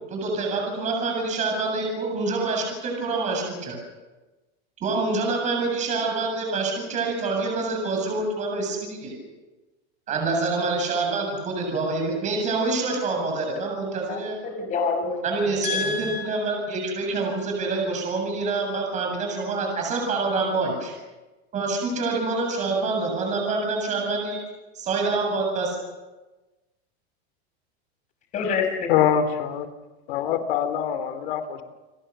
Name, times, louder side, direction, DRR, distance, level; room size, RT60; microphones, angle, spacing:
voice 1, 0.1-3.8 4.8-9.2 10.1-14.4 15.2-20.9 21.5-24.4 24.7-25.8, right 3 dB, 20° right, 1 dB, 7.8 m, -26 dB
voice 2, 14.1-15.2 15.6-16.2 28.3-28.9, left 5 dB, 20° left, 5 dB, 5.8 m, -27 dB
voice 3, 28.9-29.7 30.1-31.6, left 9 dB, 55° left, 10 dB, 3.4 m, -24 dB
29.5 x 22.5 x 6.9 m, 1.1 s
supercardioid pair, 170°, 34 cm